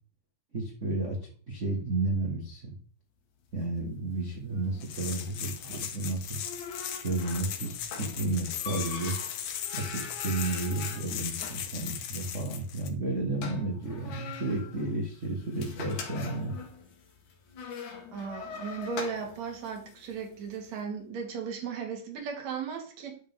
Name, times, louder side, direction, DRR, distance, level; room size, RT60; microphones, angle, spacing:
voice 1, 0.5-2.8 3.5-6.4 6.9-9.2 9.7-16.6, right 2 dB, 70° right, -1 dB, 0.7 m, -32 dB
sound 1, 3.4-20.7, left 5 dB, 60° left, 2.7 m, -44 dB
sound 2, 4.8-12.9, left 9 dB, 90° left, 1.4 m, -38 dB
voice 2, 18.1-23.2, right 6 dB, 55° right, 2 dB, 2.9 m, -36 dB
10.0 x 6.6 x 3.6 m, 0.43 s
omnidirectional pair, 4.2 m